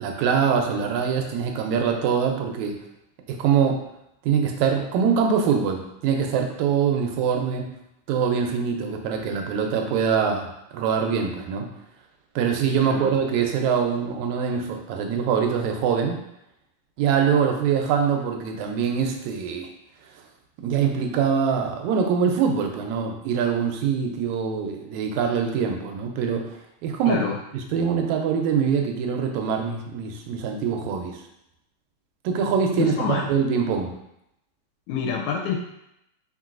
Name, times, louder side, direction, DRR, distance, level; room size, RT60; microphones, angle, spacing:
voice 1, 0.0-2.8 3.3-3.8 4.2-7.7 8.1-10.5 10.7-11.7 12.4-16.2 17.0-19.7 20.6-27.2 27.5-31.2 32.2-33.9, right 6 dB, 80° right, 3 dB, 1.8 m, -23 dB
voice 2, 12.8-13.1 27.1-27.4 32.8-33.3 34.9-35.6, left 6 dB, 85° left, 1 dB, 2.0 m, -27 dB
4.3 x 3.7 x 2.4 m, 0.82 s
omnidirectional pair, 3.5 m